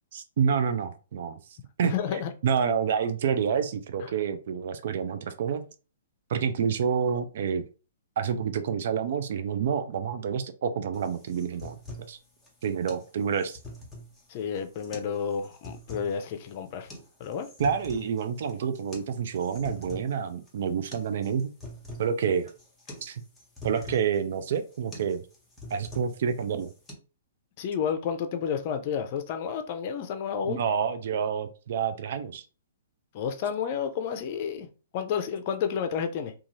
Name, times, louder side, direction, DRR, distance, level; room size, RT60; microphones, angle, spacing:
voice 1, 0.1-1.4 1.8-2.0 2.4-5.7 6.3-7.6 8.2-11.8 12.1-12.2 12.6-13.6 17.6-21.5 22.0-22.5 23.0-23.2 23.6-25.2 25.7-26.7 30.4-32.4, right 7 dB, 60° right, 0.4 m, -28 dB
voice 2, 1.8-2.3 14.3-16.9 17.2-17.5 27.6-30.6 33.1-36.3, left 7 dB, 45° left, 0.5 m, -31 dB
sound 1, 10.9-26.9, left 1 dB, 10° left, 1.0 m, -45 dB
2.6 x 2.4 x 3.0 m
hypercardioid pair, 130°, 0 cm